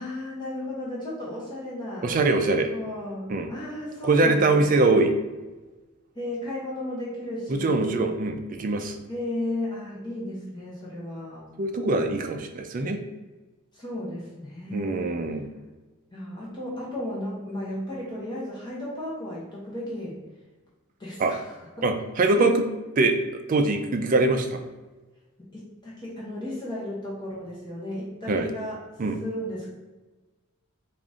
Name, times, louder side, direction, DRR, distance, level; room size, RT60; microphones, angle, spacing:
voice 1, 0.0-2.1 2.7-4.6 6.1-7.9 9.1-11.5 13.7-15.1 16.1-20.2 21.0-21.5 22.3-22.4 25.4-28.8 29.2-29.7, left 1 dB, 20° left, -7 dB, 0.9 m, -34 dB
voice 2, 2.0-2.7 3.3-3.5 4.0-5.1 7.5-9.0 11.6-13.0 14.7-15.5 21.2-21.3 21.8-22.7 23.0-24.6 28.3-28.5 29.0-29.2, right 2 dB, 35° right, 5 dB, 0.3 m, -23 dB
3.8 x 2.5 x 3.6 m, 1.2 s
head